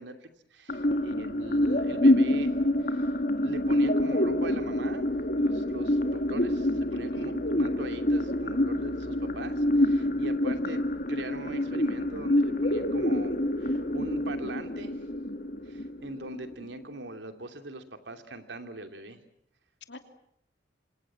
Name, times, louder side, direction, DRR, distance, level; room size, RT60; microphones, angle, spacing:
voice 1, 0.0-2.6 2.8-3.1 3.4-5.0 5.4-10.8 11.1-15.0 15.7-19.2, right 2 dB, 90° right, 7 dB, 2.8 m, -41 dB
voice 2, 0.7-1.2 6.9-7.4 19.9-20.0, left 1 dB, 80° left, 7 dB, 3.0 m, -46 dB
sound 1, 0.7-16.7, left 1 dB, 50° left, 2.0 m, -27 dB
28.5 x 26.0 x 7.5 m, 0.71 s
head